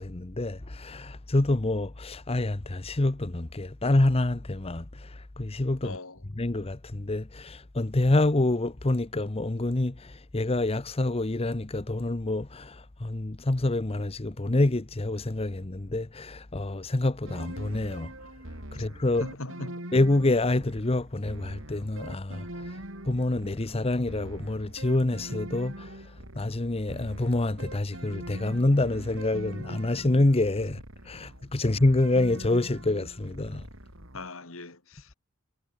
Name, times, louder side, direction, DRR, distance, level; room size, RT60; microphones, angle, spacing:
voice 1, 0.0-6.0 6.4-18.1 18.7-19.2 19.9-22.8 23.1-26.0 26.3-30.8 31.1-33.6, left 2 dB, 30° left, 0.9 m, -27 dB
voice 2, 5.8-6.2 18.7-18.9 19.2-19.8 34.1-35.1, left 2 dB, 85° left, 3.5 m, -40 dB
sound 1, 17.2-34.3, right 1 dB, 70° right, 6.2 m, -43 dB
head